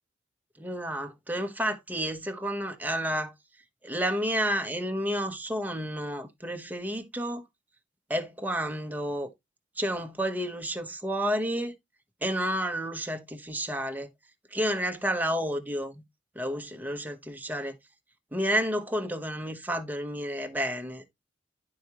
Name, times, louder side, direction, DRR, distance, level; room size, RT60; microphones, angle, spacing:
voice 1, 0.6-3.3 3.8-7.4 8.1-9.3 9.8-11.7 12.2-14.1 14.5-16.0 16.3-17.8 18.3-21.0, equal, 10° right, 1.0 m, -30 dB
11.0 x 4.7 x 2.9 m
head